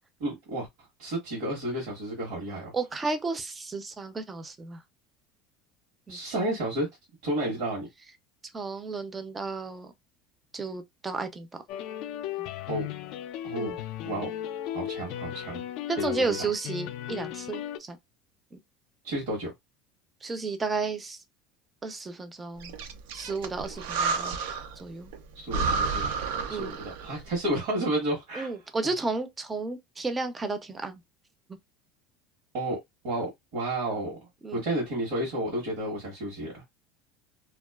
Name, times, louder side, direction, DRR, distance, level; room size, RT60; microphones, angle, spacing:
voice 1, 0.2-0.7 1.0-2.7 6.1-6.9 7.2-7.9 12.7-12.9 13.4-13.8 14.0-14.3 14.7-15.6 16.0-16.4 19.0-19.5 25.3-26.2 26.5-28.5 32.5-32.8 33.0-34.2 34.5-36.6, right 1 dB, 70° right, 1.1 m, -31 dB
voice 2, 2.7-4.8 6.1-6.2 8.5-9.9 10.5-11.5 12.4-12.5 13.6-13.8 15.9-18.0 18.5-18.6 20.2-21.2 21.8-22.7 23.1-24.4 24.8-25.1 26.5-26.8 28.3-31.0 34.4-34.6, right 4 dB, 15° right, 0.4 m, -33 dB
sound 1, 11.7-17.8, left 11 dB, 60° left, 0.3 m, -36 dB
Breathing, 22.6-24.8 25.1-25.2 25.5-27.2, right 4 dB, 85° right, 0.4 m, -30 dB
2.4 x 2.2 x 2.3 m
supercardioid pair, 140°, 0 cm